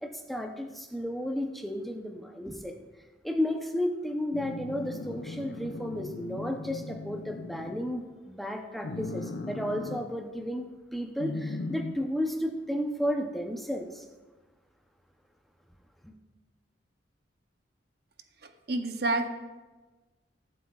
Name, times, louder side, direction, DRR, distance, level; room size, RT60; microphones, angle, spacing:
voice 1, 0.0-2.7 3.2-14.0 16.0-16.1, equal, ahead, 3 dB, 0.7 m, -33 dB
sound 1, 4.3-7.9 8.8-10.0 11.2-11.9, left 2 dB, 65° left, 0.6 m, -38 dB
voice 2, 18.7-19.3, right 2 dB, 55° right, 6 dB, 0.8 m, -28 dB
22.5 x 7.6 x 2.4 m, 1.2 s
head